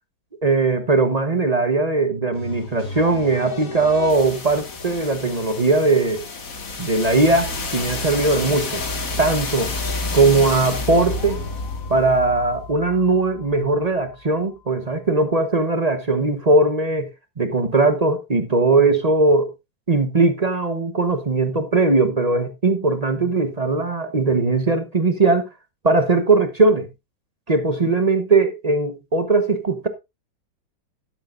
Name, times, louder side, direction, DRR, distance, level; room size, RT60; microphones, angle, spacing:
voice 1, 0.4-6.2 6.8-8.8 9.2-9.7 10.1-11.4 11.9-17.1 17.4-19.5 19.9-25.5 25.8-26.9 27.5-29.9, right 3 dB, 30° right, 0.8 m, -19 dB
sound 1, 2.3-14.2, left 3 dB, 45° left, 2.1 m, -30 dB
12.5 x 10.5 x 2.5 m
omnidirectional pair, 2.0 m